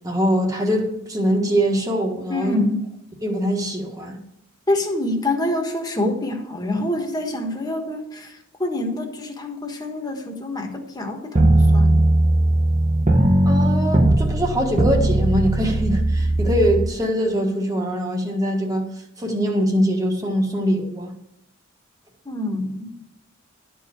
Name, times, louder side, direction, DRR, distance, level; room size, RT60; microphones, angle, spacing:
voice 1, 0.0-2.6 3.2-4.2 13.4-18.9 19.2-21.1, equal, 15° right, 1 dB, 1.4 m, -23 dB
voice 2, 2.3-2.8 4.7-8.3 8.6-12.1 22.2-22.9, left 1 dB, 20° left, 3 dB, 1.4 m, -26 dB
sound 1, 11.4-16.9, right 1 dB, 30° right, 1.0 m, -18 dB
12.0 x 4.6 x 8.0 m, 0.82 s
head